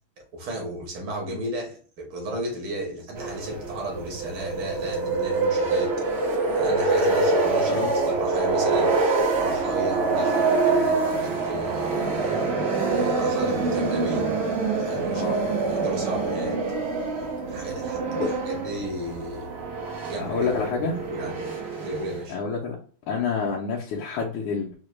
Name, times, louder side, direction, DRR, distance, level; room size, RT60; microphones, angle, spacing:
voice 1, 0.3-5.9 6.6-14.3 14.8-16.6 17.5-19.5 20.0-21.4 21.8-22.4, right 1 dB, 70° right, 1.9 m, -34 dB
sound 1, 3.1-22.2, right 3 dB, 90° right, 0.5 m, -25 dB
voice 2, 15.1-15.5 18.1-18.3 20.2-20.9 22.3-22.8 23.1-24.7, left 5 dB, 80° left, 1.5 m, -28 dB
4.6 x 2.1 x 3.1 m
omnidirectional pair, 2.4 m